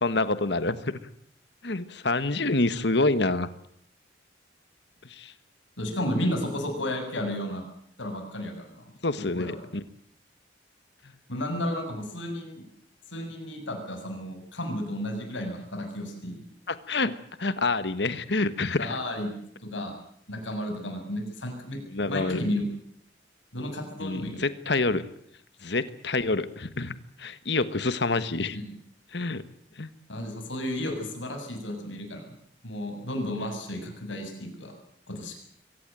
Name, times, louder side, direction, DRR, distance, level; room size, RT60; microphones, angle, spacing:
voice 1, 0.0-0.9 1.6-3.5 5.1-5.3 9.0-9.8 16.7-18.9 21.9-22.4 24.0-25.1 25.6-28.6 29.1-29.4 29.8-29.9, left 3 dB, 65° left, 13 dB, 1.4 m, -27 dB
voice 2, 5.8-7.6 8.0-9.7 11.3-12.6 13.1-16.4 18.8-19.3 19.6-20.0 20.3-22.6 23.5-24.4 28.5-28.7 30.1-32.3 32.6-34.7 35.1-35.4, left 1 dB, 90° left, 4 dB, 7.3 m, -33 dB
23.0 x 18.0 x 9.1 m, 0.70 s
head